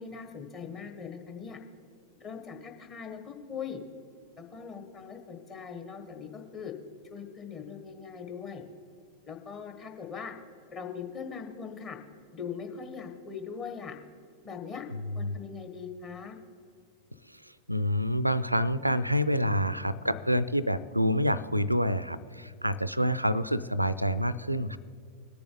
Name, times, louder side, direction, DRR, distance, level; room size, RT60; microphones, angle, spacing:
voice 1, 0.0-1.6 2.2-3.8 4.4-6.7 7.1-8.6 9.2-10.3 10.7-12.0 12.3-13.9 14.4-14.8 15.1-16.4, left 6 dB, 30° left, 3 dB, 1.5 m, -40 dB
voice 2, 17.7-24.8, equal, 90° right, 17 dB, 0.4 m, -27 dB
20.5 x 6.9 x 3.9 m, 2.4 s
figure-of-eight pair, 90°, 0 cm